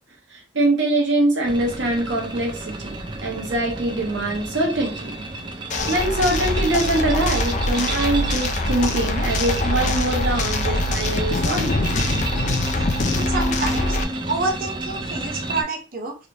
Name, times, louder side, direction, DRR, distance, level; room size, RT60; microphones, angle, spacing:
voice 1, 0.5-5.2 5.9-11.8, right 1 dB, 75° right, 0 dB, 1.0 m, -23 dB
sound 1, 1.4-15.6, right 2 dB, 25° right, 0.5 m, -31 dB
sound 2, 5.7-14.0, left 1 dB, 40° left, 0.4 m, -23 dB
voice 2, 13.1-14.0 14.3-16.1, right 3 dB, 50° right, 1 dB, 0.8 m, -28 dB
3.3 x 2.5 x 2.9 m, 0.34 s
head